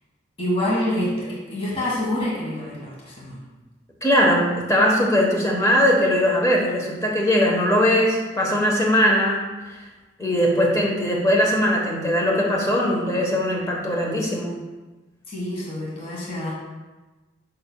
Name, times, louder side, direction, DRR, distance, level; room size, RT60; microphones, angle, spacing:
voice 1, 0.4-3.4 15.3-16.5, left 1 dB, 30° left, -6 dB, 1.7 m, -27 dB
voice 2, 4.0-9.9 10.2-14.6, equal, 15° left, -1 dB, 1.1 m, -20 dB
7.6 x 6.6 x 2.3 m, 1.2 s
head